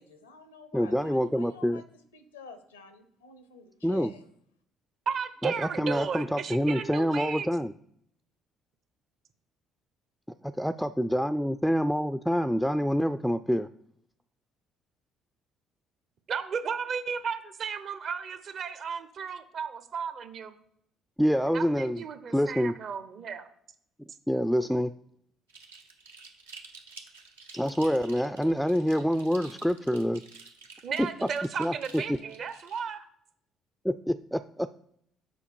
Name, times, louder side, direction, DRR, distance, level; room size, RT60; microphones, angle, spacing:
voice 1, 0.0-1.8 2.1-4.2, left 5 dB, 85° left, 11 dB, 0.7 m, -49 dB
voice 2, 0.7-1.8 3.8-4.1 5.4-7.7 10.4-13.7 21.2-22.0 22.3-22.7 24.3-24.9 27.5-30.2 31.6-32.2 33.8-34.7, equal, ahead, 10 dB, 0.3 m, -26 dB
voice 3, 5.1-7.5 16.3-20.5 21.5-23.5 30.8-33.1, right 6 dB, 55° right, 12 dB, 0.8 m, -34 dB
sound 1, 25.5-32.8, right 4 dB, 90° right, 0.8 m, -50 dB
7.2 x 4.8 x 4.5 m, 0.70 s
hypercardioid pair, 50°, 0 cm